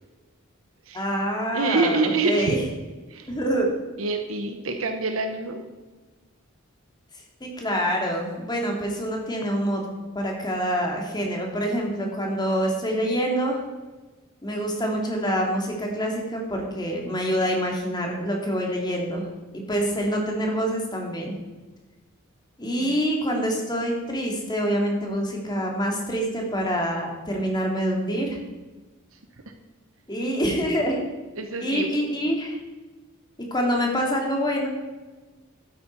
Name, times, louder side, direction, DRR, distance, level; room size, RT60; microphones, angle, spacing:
voice 1, 0.9-2.6 3.3-3.7 7.4-9.8 10.1-13.6 14.4-19.3 19.7-21.3 22.6-28.4 30.1-31.0 31.6-32.5 33.5-34.7, equal, 20° left, 0 dB, 2.4 m, -26 dB
voice 2, 1.5-2.5 3.1-3.3 4.0-5.6 22.8-23.0 31.4-31.9, right 3 dB, 80° right, 5 dB, 1.1 m, -26 dB
12.0 x 9.4 x 4.5 m, 1.2 s
head